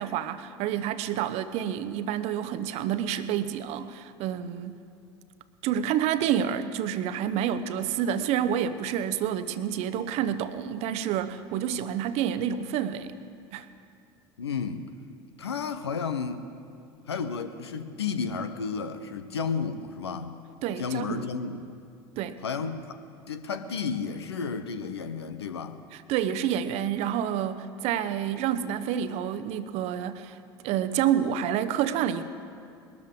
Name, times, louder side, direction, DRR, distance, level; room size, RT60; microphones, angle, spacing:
voice 1, 0.0-4.8 5.6-13.1 13.5-13.7 20.6-21.3 22.2-22.4 25.9-30.4 30.6-32.2, right 9 dB, 55° right, 12 dB, 0.8 m, -28 dB
voice 2, 14.4-14.9 15.4-16.5 17.1-20.4 20.8-21.6 22.4-23.0 23.3-25.8, left 5 dB, 80° left, 10 dB, 0.8 m, -32 dB
21.0 x 13.0 x 3.7 m, 2.5 s
figure-of-eight pair, 75°, 13 cm